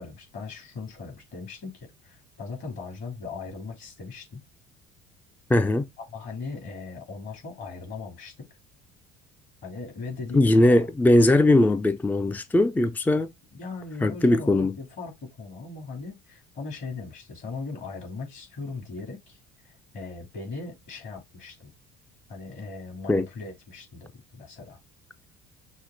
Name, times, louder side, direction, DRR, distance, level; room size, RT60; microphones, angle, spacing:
voice 1, 0.0-4.4 6.0-8.5 9.6-10.8 13.5-19.4 19.6-21.7 22.3-24.8, left 4 dB, 60° left, 3.2 m, -39 dB
voice 2, 5.5-5.9 10.3-13.3 14.0-14.7 23.1-23.3, left 1 dB, 10° left, 0.5 m, -20 dB
6.2 x 2.1 x 3.9 m
hypercardioid pair, 65°, 21 cm